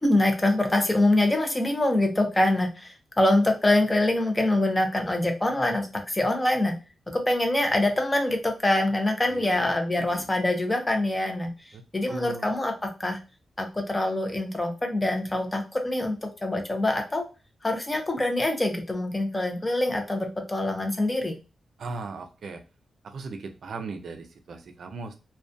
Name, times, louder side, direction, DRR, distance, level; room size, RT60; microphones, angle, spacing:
voice 1, 0.0-6.7 7.1-11.5 11.9-13.2 13.6-17.3 17.6-21.4, left 1 dB, 15° left, 4 dB, 0.4 m, -24 dB
voice 2, 9.3-9.7 10.0-10.3 11.7-11.8 12.1-12.5 21.8-22.6 23.0-25.2, right 3 dB, 60° right, 6 dB, 0.3 m, -38 dB
2.3 x 2.1 x 2.5 m, 0.31 s
wide cardioid pair, 145°, 0 cm